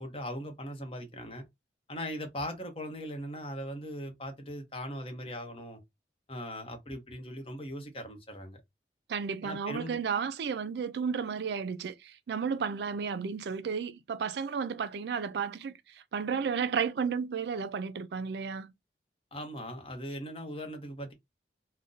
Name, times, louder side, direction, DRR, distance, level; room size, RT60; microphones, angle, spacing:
voice 1, 0.0-1.4 1.9-5.8 6.3-8.6 9.4-10.0 19.3-21.1, equal, 30° left, 0.8 m, -39 dB
voice 2, 9.1-15.7 16.1-18.7, right 6 dB, 70° right, 0.4 m, -33 dB
2.6 x 2.1 x 3.8 m
head